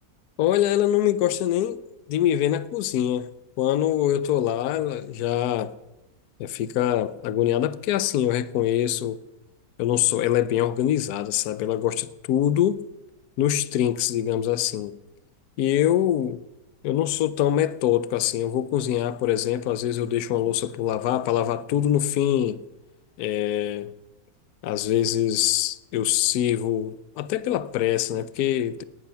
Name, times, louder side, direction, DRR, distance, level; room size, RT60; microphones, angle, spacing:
voice 1, 0.4-1.8 2.1-3.3 3.6-5.7 6.4-9.2 9.8-12.8 13.4-14.9 15.6-16.4 16.8-22.6 23.2-23.9 24.6-28.8, left 11 dB, 70° left, 1.2 m, -24 dB
19.0 x 11.5 x 5.8 m
omnidirectional pair, 1.8 m